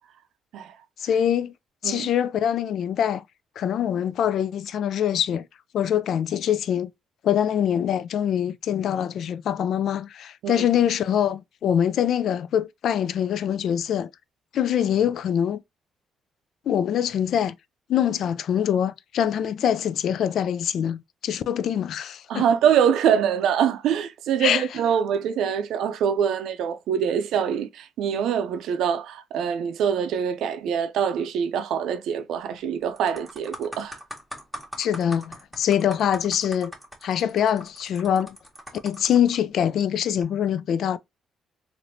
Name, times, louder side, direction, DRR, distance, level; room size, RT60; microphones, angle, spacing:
voice 1, 1.0-1.5 1.8-3.2 3.6-5.5 5.7-6.9 7.2-14.1 14.5-15.6 16.7-17.6 17.9-22.4 24.4-24.6 34.8-36.7 37.0-38.4 38.8-41.0, left 9 dB, 70° left, 0.3 m, -24 dB
voice 2, 22.3-34.0, right 8 dB, 80° right, 0.5 m, -24 dB
sound 1, 32.3-32.6 33.0-39.4 40.0-40.2, right 1 dB, ahead, 1.2 m, -41 dB
3.3 x 2.5 x 2.6 m
cardioid pair, 90°, 0 cm